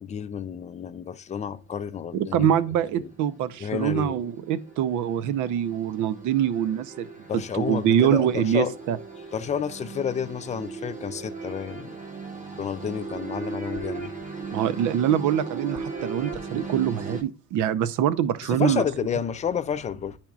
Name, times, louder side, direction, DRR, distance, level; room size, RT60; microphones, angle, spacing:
voice 1, 0.0-2.5 3.0-3.1 3.6-4.2 7.3-8.7 9.3-11.9 12.6-14.1 18.5-20.2, left 8 dB, 20° left, 0.4 m, -30 dB
sound 1, 2.0-2.2 3.0-17.2, right 4 dB, 25° right, 1.0 m, -38 dB
voice 2, 2.1-7.1 7.5-9.0 14.5-18.8, right 9 dB, 65° right, 0.7 m, -24 dB
10.5 x 4.4 x 2.4 m
cardioid pair, 130°, 32 cm